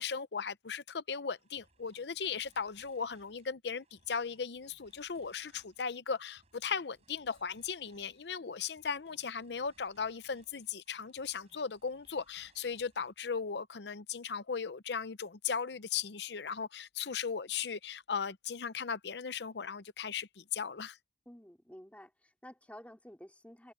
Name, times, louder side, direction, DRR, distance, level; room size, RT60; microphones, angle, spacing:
voice 1, 0.0-21.0, left 6 dB, 75° left, 0.7 m, -37 dB
sound 1, 1.3-13.6, right 2 dB, 35° right, 4.2 m, -69 dB
voice 2, 21.2-23.7, equal, 10° left, 3.1 m, -52 dB
head